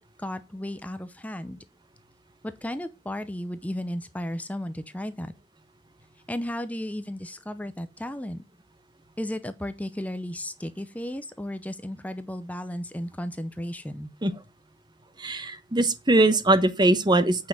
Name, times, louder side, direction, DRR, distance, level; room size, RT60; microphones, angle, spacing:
voice 1, 0.2-1.6 2.4-5.3 6.3-8.4 9.2-14.1, left 1 dB, 10° left, 0.6 m, -34 dB
voice 2, 15.2-17.5, right 2 dB, 25° right, 0.9 m, -21 dB
8.6 x 5.6 x 6.2 m
head